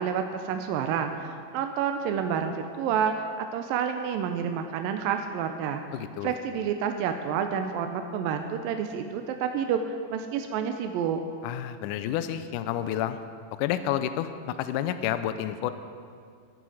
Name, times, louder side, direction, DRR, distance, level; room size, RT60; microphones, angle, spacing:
voice 1, 0.0-5.8 6.2-11.2, right 7 dB, 80° right, 6 dB, 2.3 m, -29 dB
voice 2, 5.9-6.3 11.4-13.2 13.6-15.7, left 11 dB, 90° left, 11 dB, 1.8 m, -30 dB
16.0 x 10.5 x 4.9 m, 2.2 s
omnidirectional pair, 4.3 m